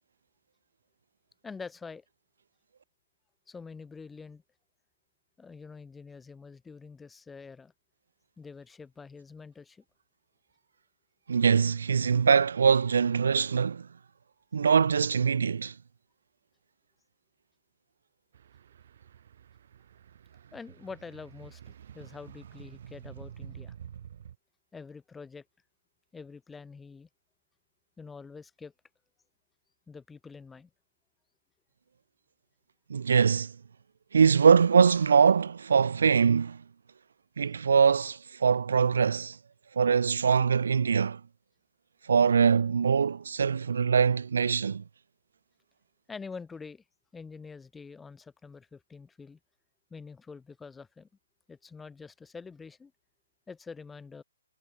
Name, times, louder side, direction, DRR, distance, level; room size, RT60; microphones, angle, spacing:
voice 1, 1.4-2.0 3.5-4.4 5.4-7.7 8.4-9.8 20.5-23.7 24.7-25.4 26.1-27.1 28.0-28.7 29.9-30.7 46.1-46.8 47.1-49.4 49.9-51.1 51.5-52.9 53.5-54.2, left 5 dB, 5° left, 4.1 m, -46 dB
voice 2, 11.3-13.9 14.5-15.7 32.9-33.5 34.1-36.6 37.4-39.4 39.8-41.2 42.1-44.8, right 6 dB, 65° right, 0.5 m, -23 dB
sound 1, 18.3-24.4, right 9 dB, 50° right, 1.9 m, -48 dB
hypercardioid pair, 160°, 0 cm